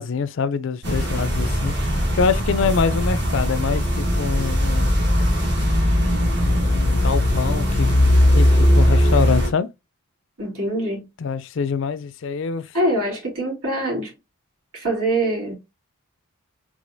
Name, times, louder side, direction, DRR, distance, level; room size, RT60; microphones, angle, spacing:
voice 1, 0.0-1.7 2.1-4.9 6.4-8.0 8.3-9.7 11.2-12.6, left 5 dB, 55° left, 0.4 m, -25 dB
sound 1, 0.8-9.5, equal, 50° right, 1.6 m, -19 dB
voice 2, 10.4-11.1 12.7-14.1 14.7-15.5, right 1 dB, 85° right, 3.2 m, -24 dB
4.8 x 3.7 x 2.6 m
head